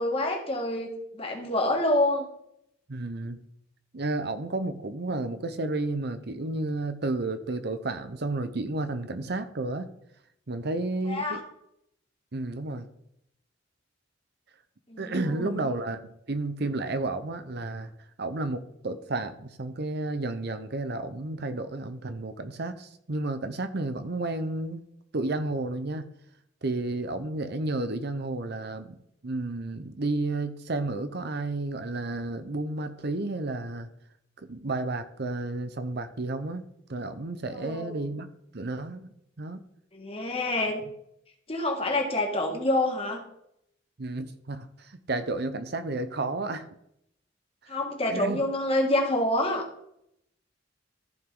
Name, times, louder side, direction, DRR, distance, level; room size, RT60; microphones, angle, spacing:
voice 1, 0.0-2.3 11.1-11.4 14.9-15.7 37.5-38.0 39.9-40.8 41.5-43.2 47.7-49.7, left 1 dB, 30° left, 1 dB, 1.8 m, -27 dB
voice 2, 2.9-3.4 3.9-9.9 10.5-11.4 12.3-12.9 15.0-16.0 16.3-17.9 18.2-24.8 25.1-26.1 26.6-29.0 29.2-33.9 34.4-36.6 36.9-38.3 38.5-39.6 44.0-46.7 48.1-48.4, right 2 dB, 55° right, 9 dB, 0.8 m, -32 dB
14.5 x 4.9 x 3.8 m, 0.75 s
head